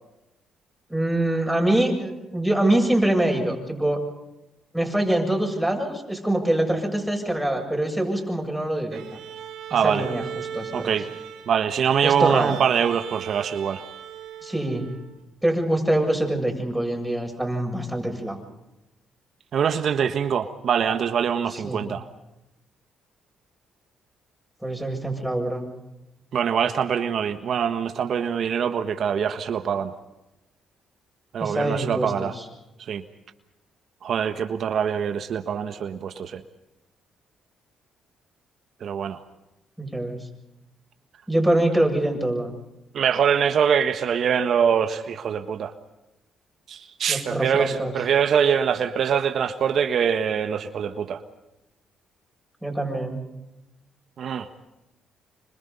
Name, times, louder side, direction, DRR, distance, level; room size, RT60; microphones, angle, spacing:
voice 1, 0.9-4.0 4.7-9.0 9.7-10.2 10.5-10.9 12.0-12.6 14.4-14.8 15.4-18.4 21.5-21.8 24.6-25.7 31.4-32.5 39.8-40.2 41.3-42.5 47.1-47.9 52.6-53.2, right 1 dB, 5° right, 1 dB, 7.6 m, -24 dB
Bowed string instrument, 8.9-15.2, right 9 dB, 85° right, 3.2 m, -38 dB
voice 2, 9.7-10.1 10.7-11.0 11.5-13.8 19.5-22.0 26.3-29.9 31.3-32.3 32.9-33.0 34.0-36.4 38.8-39.2 42.9-45.7 46.7-51.2 54.2-54.5, right 7 dB, 60° right, 8 dB, 1.4 m, -23 dB
27.5 x 25.5 x 5.5 m, 0.94 s
cardioid pair, 90°, 0 cm